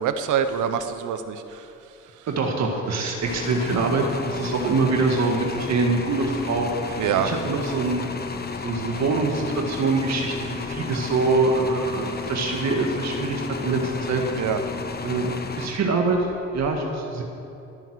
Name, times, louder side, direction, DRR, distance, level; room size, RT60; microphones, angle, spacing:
voice 1, 0.0-1.7 7.0-7.3 14.4-14.6, right 8 dB, 80° right, 9 dB, 1.1 m, -25 dB
voice 2, 2.3-8.0 8.6-14.2 15.0-17.2, right 3 dB, 60° right, 1 dB, 1.9 m, -24 dB
sound 1, 3.2-16.2, left 4 dB, 30° left, 1.3 m, -33 dB
21.0 x 9.3 x 6.4 m, 2.8 s
cardioid pair, 90°, 30 cm